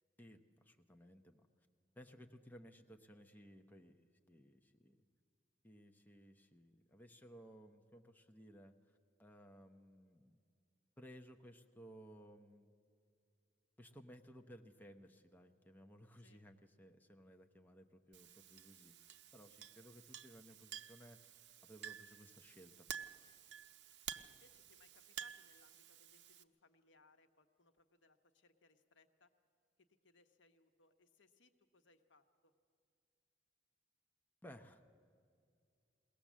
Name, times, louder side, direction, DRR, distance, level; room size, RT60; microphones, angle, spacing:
voice 1, 0.2-1.5 2.0-4.0 4.3-5.0 5.6-10.4 11.0-12.7 13.8-21.3 21.6-22.9 34.4-34.9, equal, 10° left, 4 dB, 0.7 m, -59 dB
Chink clink, 18.1-26.4, right 9 dB, 65° right, 0.7 m, -52 dB
voice 2, 24.1-29.3 29.8-32.5, left 3 dB, 85° left, 8 dB, 1.0 m, -71 dB
21.5 x 17.5 x 7.3 m, 2.3 s
head